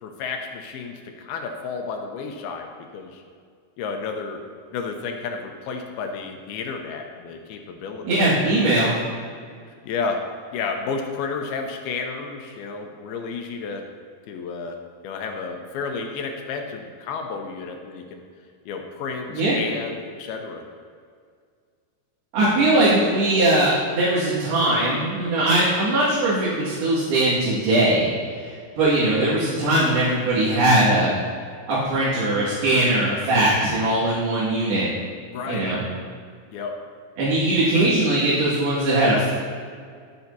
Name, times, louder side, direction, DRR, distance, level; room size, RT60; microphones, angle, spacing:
voice 1, 0.0-3.2 3.8-4.4 4.7-8.5 9.7-10.3 10.5-13.9 14.3-18.2 18.7-20.6 35.3-35.8 36.5-36.8, left 5 dB, 80° left, 4 dB, 2.5 m, -32 dB
voice 2, 8.0-8.9 19.3-19.6 22.3-28.1 28.3-31.1 31.7-34.9 35.5-35.8 37.2-39.3, right 1 dB, 75° right, -10 dB, 3.8 m, -20 dB
11.5 x 10.5 x 2.7 m, 2.1 s
omnidirectional pair, 4.7 m